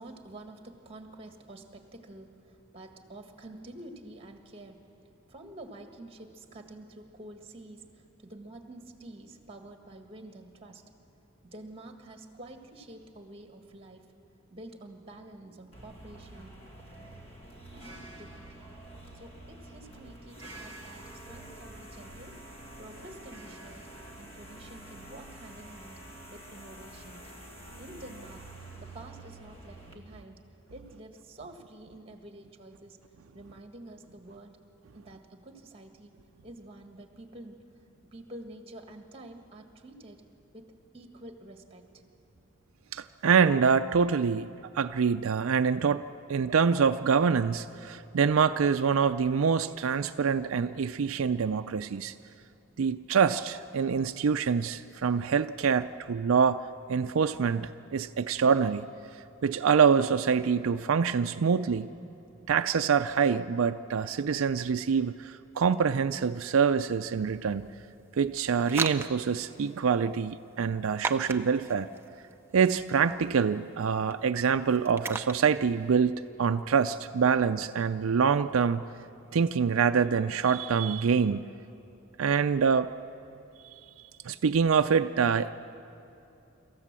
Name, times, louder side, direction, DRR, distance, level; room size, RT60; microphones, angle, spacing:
voice 1, 0.0-10.8 11.4-14.0 14.5-16.7 17.7-18.7 19.1-22.4 22.8-23.9 24.2-26.0 26.3-27.2 27.8-28.4 28.8-30.4 30.7-33.0 33.3-34.6 34.9-36.1 36.4-37.6 38.1-40.2 40.5-42.0, right 1 dB, 25° right, 5 dB, 1.7 m, -48 dB
sound 1, 15.7-29.9, right 1 dB, 25° left, 2.0 m, -47 dB
voice 2, 42.9-44.5 44.7-52.1 52.8-61.9 62.5-67.7 68.2-71.9 72.5-78.8 79.3-81.5 82.2-82.9 84.2-85.5, right 6 dB, 80° right, 9 dB, 0.4 m, -25 dB
sound 2, 67.3-75.9, right 3 dB, 10° right, 0.6 m, -39 dB
26.0 x 14.5 x 7.5 m, 2.8 s
head